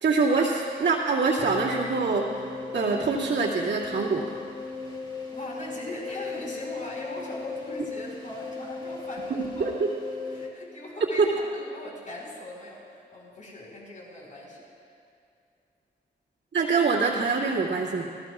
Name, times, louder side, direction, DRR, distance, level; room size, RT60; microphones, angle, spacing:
voice 1, 0.0-2.4 2.7-4.4 9.3-9.9 11.2-11.3 16.5-18.0, right 4 dB, 75° right, -7 dB, 2.3 m, -24 dB
sound 1, 1.4-10.5, left 4 dB, 25° left, 2.5 m, -37 dB
voice 2, 5.3-9.7 10.3-14.7, left 1 dB, 45° left, -3 dB, 4.6 m, -40 dB
26.5 x 16.0 x 2.5 m, 2.5 s
cardioid pair, 90°, 19 cm